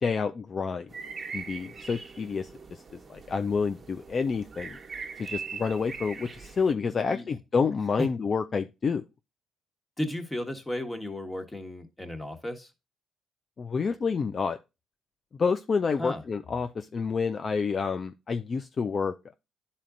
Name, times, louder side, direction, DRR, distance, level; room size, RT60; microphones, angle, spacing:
voice 1, 0.0-0.9 1.3-4.8 5.2-9.0 13.6-14.6 15.4-19.3, left 5 dB, 45° left, 0.4 m, -29 dB
sound 1, 0.9-6.7, right 5 dB, 35° right, 1.1 m, -41 dB
voice 2, 6.9-7.3 8.0-8.1 10.0-12.7 16.0-16.2, left 1 dB, 15° left, 1.5 m, -34 dB
10.5 x 4.2 x 2.5 m
supercardioid pair, 60°, 0 cm